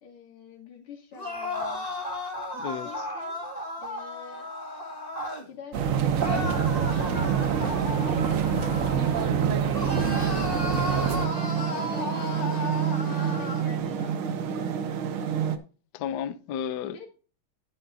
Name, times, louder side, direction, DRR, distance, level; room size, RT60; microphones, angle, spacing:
voice 1, 0.0-1.9 2.8-3.4 3.8-4.5 5.5-7.6 8.3-8.8 9.5-10.4 11.6-14.7 16.8-17.1, left 6 dB, 85° left, 3.4 m, -45 dB
sound 1, 1.1-5.5 6.2-9.4 9.7-13.7, left 2 dB, 20° left, 1.6 m, -34 dB
voice 2, 2.5-3.0 15.9-17.0, left 8 dB, 65° left, 1.1 m, -33 dB
sound 2, 5.7-11.3, right 7 dB, 60° right, 0.9 m, -27 dB
sound 3, 5.8-15.6, right 8 dB, 75° right, 1.8 m, -29 dB
11.5 x 10.5 x 2.7 m
omnidirectional pair, 2.3 m